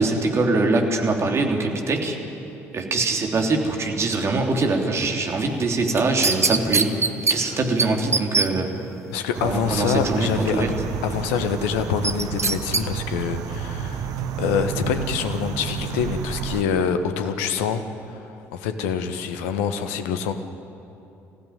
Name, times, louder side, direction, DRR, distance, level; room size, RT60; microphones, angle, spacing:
voice 1, 0.0-2.2 2.7-8.7 9.4-10.7, right 3 dB, 35° right, 2 dB, 3.1 m, -23 dB
sound 1, 5.9-7.4 7.8-7.9 8.1-8.5 12.0-12.8 13.2-13.3, right 4 dB, 85° right, 0.7 m, -21 dB
voice 2, 7.3-7.6 9.1-10.7 11.0-20.3, left 7 dB, 65° left, 8 dB, 1.3 m, -26 dB
sound 2, 9.3-16.6, right 7 dB, 55° right, 1.2 m, -31 dB
25.0 x 15.5 x 10.0 m, 2.9 s
figure-of-eight pair, 50°, 8 cm